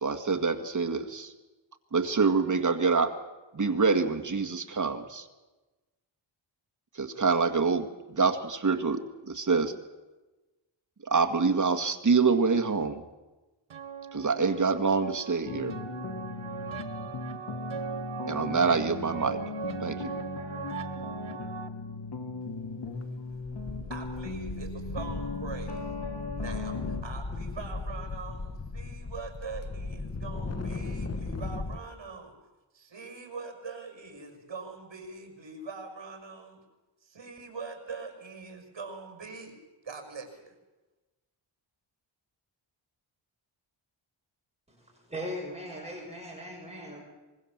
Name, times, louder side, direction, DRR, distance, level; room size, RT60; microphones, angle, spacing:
voice 1, 0.0-1.3 1.9-3.1 3.5-5.3 7.0-9.7 11.0-13.0 14.1-15.7 18.3-19.4 19.8-20.1, right 4 dB, 40° right, 6 dB, 1.8 m, -26 dB
sound 1, 13.7-21.7, right 8 dB, 85° right, 1.7 m, -40 dB
sound 2, 15.4-27.0, left 3 dB, 55° left, 2.2 m, -37 dB
sound 3, 22.8-23.0 23.3-31.8, left 3 dB, 30° left, 1.3 m, -37 dB
voice 2, 23.9-25.8 26.3-32.3 32.7-36.6 37.0-39.6 39.8-40.5, right 4 dB, 65° right, 4 dB, 5.6 m, -43 dB
voice 3, 45.1-47.0, equal, 15° right, -2 dB, 6.9 m, -38 dB
24.5 x 22.5 x 7.4 m, 1.1 s
wide cardioid pair, 120°, 47 cm